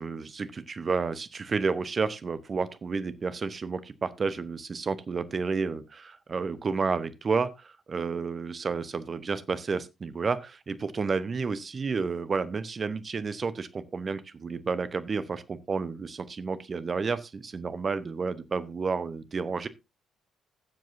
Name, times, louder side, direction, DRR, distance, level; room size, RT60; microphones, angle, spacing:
voice 1, 0.0-19.7, right 4 dB, 40° right, 0.9 m, -31 dB
16.5 x 7.6 x 2.7 m
figure-of-eight pair, 45°, 0 cm